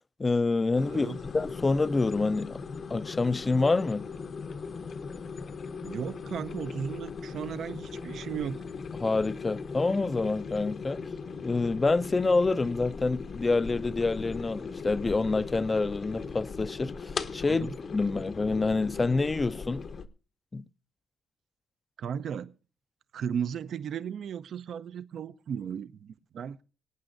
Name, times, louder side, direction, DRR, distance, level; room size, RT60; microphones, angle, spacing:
voice 1, 0.2-2.6 2.9-4.1 9.0-11.0 11.4-19.8 20.5-20.6, left 3 dB, 25° left, 0.5 m, -27 dB
sound 1, 0.7-20.1, left 5 dB, 50° left, 0.9 m, -39 dB
voice 2, 0.9-1.2 5.8-8.6 17.5-17.8 22.0-22.5 23.1-26.6, right 8 dB, 65° right, 0.5 m, -35 dB
24.5 x 8.8 x 2.6 m
cardioid pair, 90°, 0 cm